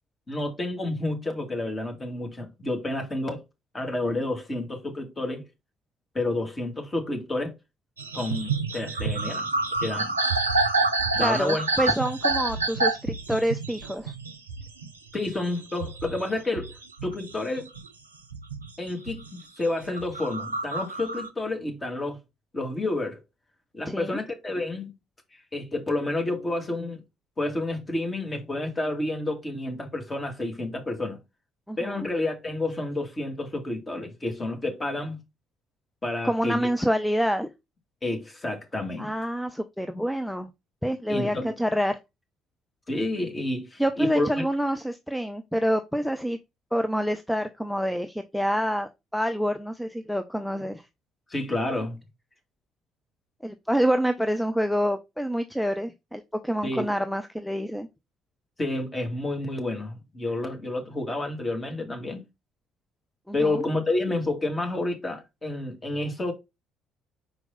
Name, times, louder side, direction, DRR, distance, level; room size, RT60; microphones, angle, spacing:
voice 1, 0.3-3.4 3.7-5.4 6.1-7.5 8.1-9.5 9.8-10.1 11.1-11.7 15.1-16.7 17.0-17.7 18.8-22.2 22.5-23.2 23.7-24.9 25.5-27.0 27.4-31.2 31.8-35.2 36.0-36.7 38.0-39.1 41.1-41.6 42.9-44.5 51.3-52.0 56.6-56.9 58.6-62.2 63.3-66.3, left 2 dB, 25° left, 2.3 m, -29 dB
sound 1, 8.0-17.9 18.3-19.3 19.8-21.3, right 3 dB, 85° right, 0.5 m, -28 dB
voice 2, 11.1-14.1 23.9-24.2 31.7-32.1 36.2-37.5 39.0-40.5 40.8-42.0 43.8-46.4 46.7-50.8 53.4-57.9 63.3-63.6, equal, ahead, 0.6 m, -27 dB
5.5 x 4.5 x 3.9 m
figure-of-eight pair, 50°, 0 cm